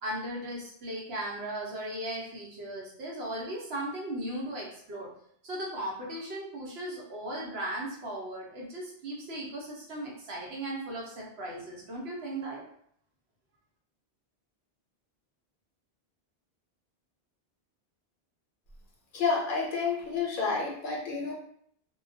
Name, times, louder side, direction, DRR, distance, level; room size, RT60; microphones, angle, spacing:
voice 1, 0.0-5.1 5.4-12.6, right 1 dB, 85° right, -3 dB, 1.0 m, -37 dB
voice 2, 19.1-21.3, left 4 dB, 60° left, -2 dB, 0.7 m, -29 dB
2.2 x 2.2 x 2.6 m, 0.67 s
omnidirectional pair, 1.0 m